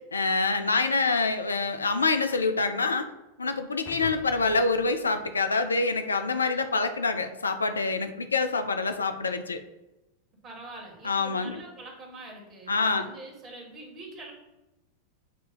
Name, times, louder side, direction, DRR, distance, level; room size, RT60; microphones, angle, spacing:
voice 1, 0.0-3.1 3.4-9.6 11.0-11.6 12.7-13.1, left 3 dB, 75° left, 8 dB, 0.5 m, -26 dB
sound 1, 3.9-6.3, left 5 dB, 40° left, 0.8 m, -47 dB
voice 2, 10.4-14.3, right 2 dB, 30° right, 1 dB, 1.9 m, -44 dB
7.5 x 2.8 x 5.3 m, 0.98 s
figure-of-eight pair, 90°, 0 cm